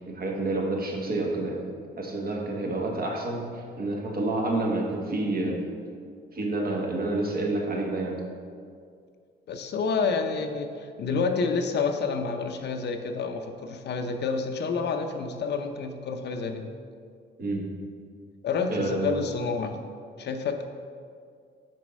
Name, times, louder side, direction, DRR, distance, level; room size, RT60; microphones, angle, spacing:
voice 1, 0.1-1.7 2.0-5.6 6.3-8.2 17.4-17.6 18.7-19.2, right 2 dB, 50° right, 0 dB, 1.3 m, -29 dB
voice 2, 9.5-16.7 18.4-19.7 20.2-20.7, left 5 dB, 60° left, 6 dB, 0.6 m, -29 dB
6.2 x 4.4 x 5.2 m, 2.2 s
cardioid pair, 90°, 20 cm